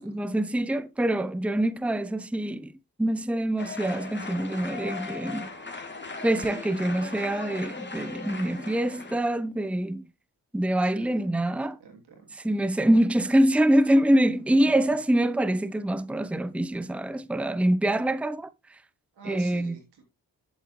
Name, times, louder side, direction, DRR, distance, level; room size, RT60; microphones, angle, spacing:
voice 1, 0.0-2.7 3.0-5.5 6.2-10.0 10.5-11.8 12.4-18.5 19.3-19.8, right 1 dB, 5° right, 0.7 m, -25 dB
sound 1, 3.6-9.2, left 3 dB, 30° left, 2.6 m, -38 dB
voice 2, 10.9-11.3 11.8-12.3 14.6-15.0 19.1-20.0, right 4 dB, 85° right, 3.1 m, -47 dB
11.5 x 7.8 x 3.1 m
supercardioid pair, 45°, 38 cm